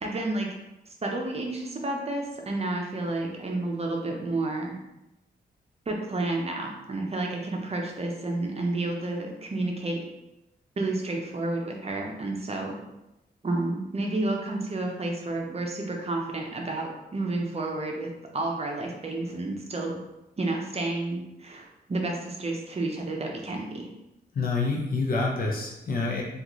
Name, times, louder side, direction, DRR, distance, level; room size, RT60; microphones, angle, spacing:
voice 1, 0.0-0.6 1.0-4.7 5.9-10.0 10.8-12.8 13.4-20.0 20.4-23.9, right 2 dB, 35° right, 0 dB, 0.7 m, -30 dB
voice 2, 24.3-26.2, left 3 dB, 55° left, -1 dB, 0.8 m, -27 dB
3.7 x 2.5 x 3.0 m, 0.92 s
cardioid pair, 75°, 17 cm